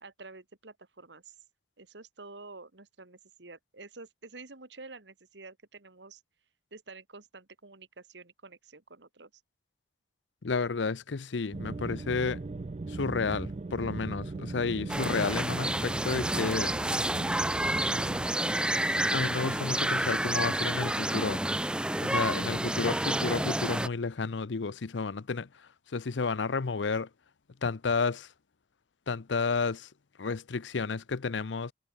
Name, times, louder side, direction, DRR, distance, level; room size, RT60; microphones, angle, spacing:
voice 1, 0.0-1.3 1.8-6.2 6.7-9.3, right 3 dB, 80° right, 2.0 m, -49 dB
voice 2, 10.4-12.4 12.9-16.7 19.0-21.4 22.0-25.5 25.9-27.1 27.6-28.3 29.1-29.9 30.2-31.7, left 4 dB, 90° left, 0.7 m, -31 dB
sound 1, 11.5-18.3, right 3 dB, 35° right, 0.4 m, -38 dB
sound 2, 14.9-23.9, right 1 dB, 5° right, 0.7 m, -29 dB
head